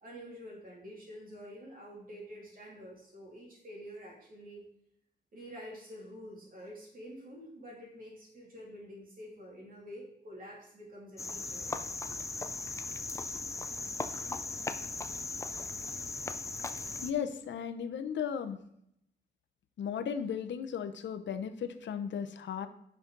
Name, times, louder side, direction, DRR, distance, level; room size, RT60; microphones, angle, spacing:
voice 1, 0.0-4.6 5.3-11.7, equal, 50° right, -3 dB, 2.9 m, -48 dB
Cricket, 11.2-17.1, left 3 dB, 15° left, 0.4 m, -38 dB
voice 2, 17.0-18.6 19.8-22.7, left 7 dB, 80° left, 9 dB, 0.7 m, -35 dB
9.3 x 6.0 x 3.9 m, 0.75 s
wide cardioid pair, 145°, 19 cm